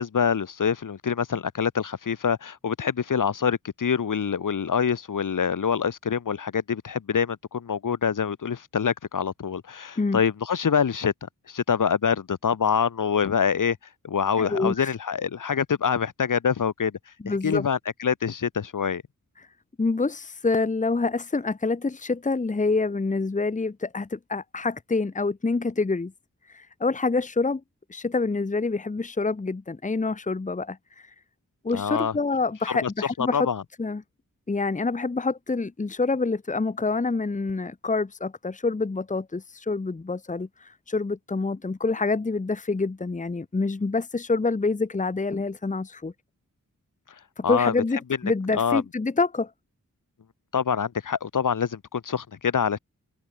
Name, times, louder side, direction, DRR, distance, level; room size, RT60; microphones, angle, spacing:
voice 1, 0.0-11.1 11.5-13.8 14.0-17.0 17.3-19.0 31.7-32.1 32.7-32.9 33.2-33.6 47.4-47.7 48.5-48.8 50.5-52.8, left 7 dB, 70° left, 2.8 m, -25 dB
voice 2, 14.4-14.9 17.2-17.7 19.4-19.5 19.8-26.1 26.5-27.6 27.9-31.1 31.6-33.5 33.8-34.0 34.5-46.1 47.4-49.5, left 3 dB, 25° left, 1.3 m, -27 dB
wide cardioid pair, 150°, 32 cm